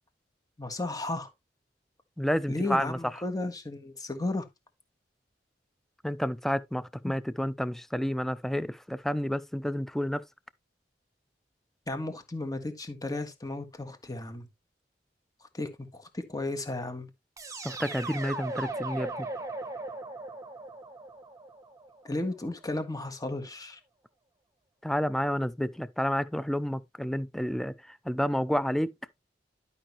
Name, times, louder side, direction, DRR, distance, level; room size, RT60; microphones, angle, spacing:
voice 1, 0.6-1.3 2.5-4.4 7.0-7.2 11.9-14.5 15.5-17.1 22.0-23.8, left 2 dB, 20° left, 1.6 m, -34 dB
voice 2, 2.2-3.0 6.0-10.2 17.6-19.1 24.8-28.9, equal, ahead, 0.4 m, -30 dB
sound 1, 17.4-22.3, right 2 dB, 20° right, 1.2 m, -38 dB
11.5 x 5.6 x 3.0 m
head